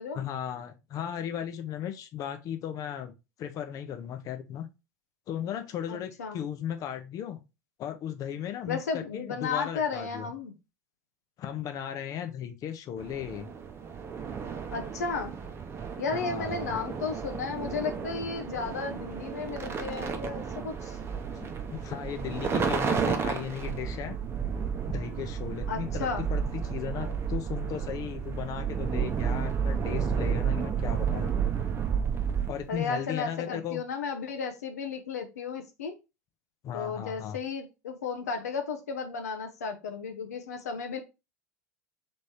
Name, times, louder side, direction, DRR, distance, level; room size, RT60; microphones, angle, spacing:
voice 1, 0.1-3.1 3.4-4.7 5.3-7.4 7.8-10.3 11.4-13.5 16.1-16.7 21.4-24.2 24.9-31.3 32.5-33.8 36.6-37.4, left 9 dB, 45° left, 0.8 m, -36 dB
voice 2, 5.9-6.4 8.7-10.5 14.7-15.3 16.0-21.0 25.7-26.3 32.7-36.0 36.7-41.0, left 5 dB, 75° left, 0.7 m, -34 dB
sound 1, 13.0-32.8, right 6 dB, 30° right, 0.8 m, -32 dB
3.5 x 3.2 x 4.2 m
figure-of-eight pair, 75°, 9 cm